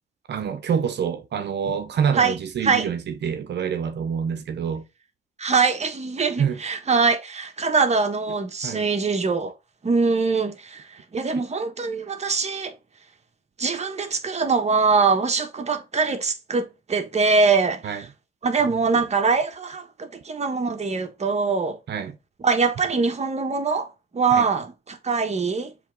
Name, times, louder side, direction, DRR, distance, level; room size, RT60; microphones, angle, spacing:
voice 1, 0.3-4.8 6.4-6.6 8.6-8.9 17.8-18.0 21.9-22.1 24.3-24.5, right 7 dB, 60° right, 0.9 m, -26 dB
voice 2, 5.4-9.5 9.8-12.7 13.6-18.1 18.4-21.8 22.4-23.9 24.1-25.7, right 4 dB, 35° right, 1.5 m, -23 dB
7.4 x 3.5 x 5.3 m
cardioid pair, 90°, 20 cm